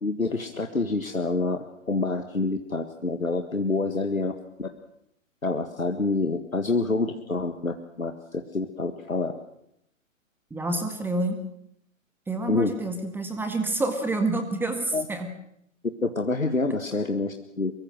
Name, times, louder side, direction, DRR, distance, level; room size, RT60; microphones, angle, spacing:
voice 1, 0.0-4.3 4.6-4.7 5.4-9.3 12.5-12.7 14.9-15.1 16.0-17.7, left 3 dB, 85° left, 6 dB, 1.9 m, -27 dB
voice 2, 10.5-11.4 12.3-15.3, right 2 dB, 5° right, 6 dB, 1.8 m, -28 dB
23.5 x 23.5 x 6.5 m, 0.75 s
figure-of-eight pair, 120°, 40 cm